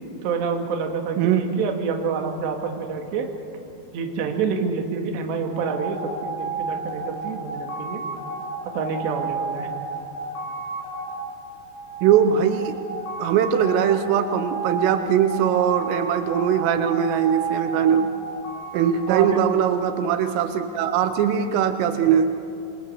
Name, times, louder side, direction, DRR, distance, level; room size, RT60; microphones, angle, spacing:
voice 1, 0.2-3.3 3.9-8.0 8.6-9.7 19.1-19.4, right 5 dB, 65° right, 3 dB, 3.9 m, -27 dB
voice 2, 1.2-1.6 12.0-12.8 13.2-18.1 18.7-22.4, right 8 dB, 90° right, 8 dB, 3.6 m, -21 dB
sound 1, 5.5-19.9, right 3 dB, 75° left, 8.0 m, -32 dB
27.0 x 23.5 x 6.8 m, 2.6 s
omnidirectional pair, 5.7 m